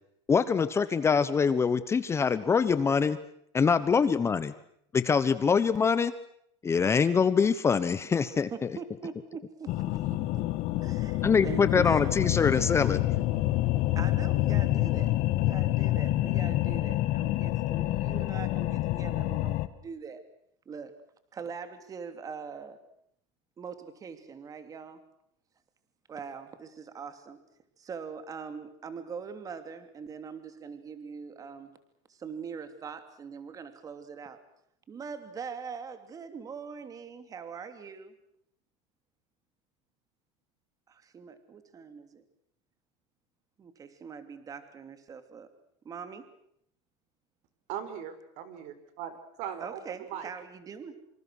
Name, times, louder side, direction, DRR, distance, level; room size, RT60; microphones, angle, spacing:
voice 1, 0.3-3.2 3.5-4.5 4.9-6.1 6.6-8.5 11.2-13.0, left 6 dB, 20° left, 14 dB, 1.1 m, -24 dB
voice 2, 8.3-10.4 10.7-12.3 13.9-20.2 20.7-20.9 21.3-22.8 23.6-25.0 26.1-27.4 27.8-31.7 32.1-34.4 34.9-38.1 40.9-42.2 43.6-45.5 45.8-46.3 49.6-51.0, right 6 dB, 25° right, 9 dB, 3.0 m, -42 dB
sound 1, 9.7-19.7, left 16 dB, 50° left, 1.9 m, -27 dB
voice 3, 47.7-50.3, right 9 dB, 55° right, 11 dB, 4.8 m, -39 dB
26.5 x 26.5 x 6.4 m, 0.69 s
supercardioid pair, 145°, 15 cm